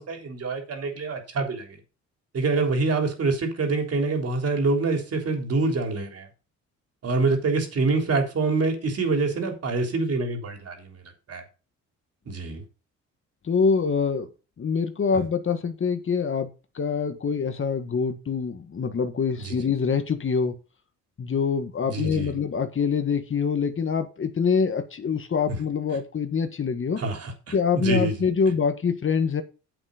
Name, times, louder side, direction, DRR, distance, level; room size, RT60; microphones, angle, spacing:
voice 1, 0.0-1.8 2.3-6.3 7.0-11.0 11.3-11.4 12.2-12.6 15.1-15.2 19.4-19.5 21.8-22.3 25.5-25.6 27.0-28.1, right 3 dB, 55° right, 3.5 m, -26 dB
voice 2, 13.4-14.3 14.6-16.5 16.7-20.6 21.2-27.0 27.5-29.4, left 6 dB, 45° left, 1.7 m, -25 dB
9.0 x 7.9 x 5.2 m
cardioid pair, 90°, 30 cm